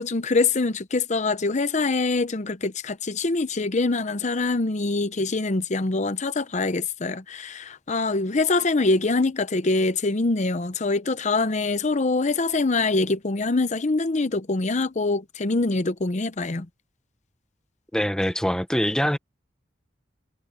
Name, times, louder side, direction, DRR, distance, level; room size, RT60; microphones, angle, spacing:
voice 1, 0.0-16.7, left 3 dB, 40° left, 0.7 m, -24 dB
voice 2, 17.9-19.2, equal, 5° left, 1.0 m, -23 dB
head